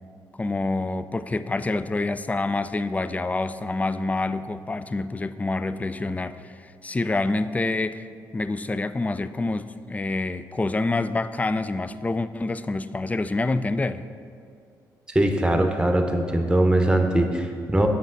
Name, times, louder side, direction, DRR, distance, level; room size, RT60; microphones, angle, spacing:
voice 1, 0.4-8.1 8.3-14.0, left 2 dB, 15° left, 13 dB, 0.3 m, -27 dB
voice 2, 15.1-17.9, right 1 dB, 10° right, 4 dB, 0.9 m, -21 dB
7.5 x 5.7 x 3.9 m, 2.3 s
supercardioid pair, 55°, 9 cm